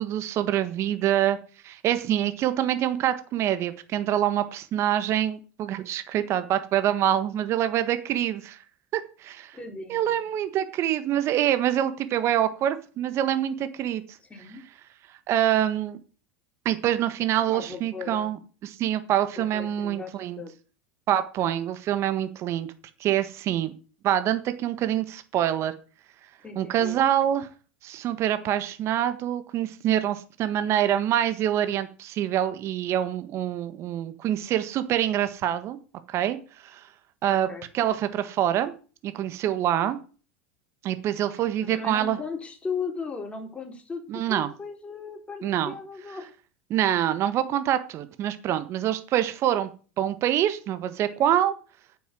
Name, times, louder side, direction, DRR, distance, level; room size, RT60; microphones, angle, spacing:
voice 1, 0.0-1.4 1.6-8.6 8.9-9.6 9.9-14.2 15.3-16.0 16.6-20.4 21.1-22.7 23.0-23.7 24.0-25.7 26.5-27.5 27.8-35.8 36.1-36.4 36.6-36.8 37.2-37.5 37.7-38.7 39.0-40.0 40.8-42.2 44.1-44.5 45.4-45.7 46.7-49.7 50.0-51.5, right 11 dB, 45° right, 11 dB, 1.5 m, -25 dB
voice 2, 9.5-10.2 14.3-14.6 17.5-18.4 19.3-20.5 26.4-27.0 37.3-37.7 41.6-46.3, left 5 dB, 20° left, 2 dB, 4.1 m, -37 dB
9.7 x 7.1 x 7.7 m, 0.37 s
hypercardioid pair, 90°, 6 cm